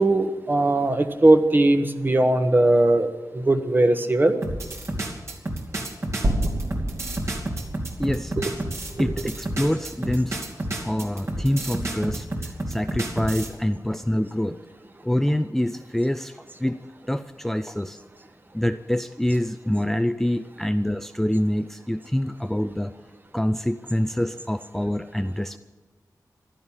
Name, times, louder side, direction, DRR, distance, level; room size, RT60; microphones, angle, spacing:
voice 1, 0.0-3.1 3.3-4.4 8.4-8.5 8.9-9.2, right 2 dB, 30° right, 8 dB, 1.3 m, -19 dB
sound 1, 4.4-13.5, right 1 dB, 45° right, 2.7 m, -30 dB
sound 2, 6.2-10.5, right 1 dB, 65° right, 2.1 m, -30 dB
voice 2, 8.0-8.3 9.0-10.4 10.8-14.6 15.0-18.0 18.5-22.9 23.3-25.6, left 1 dB, 5° left, 11 dB, 0.5 m, -26 dB
15.5 x 11.5 x 7.3 m, 1.3 s
wide cardioid pair, 100°, 7 cm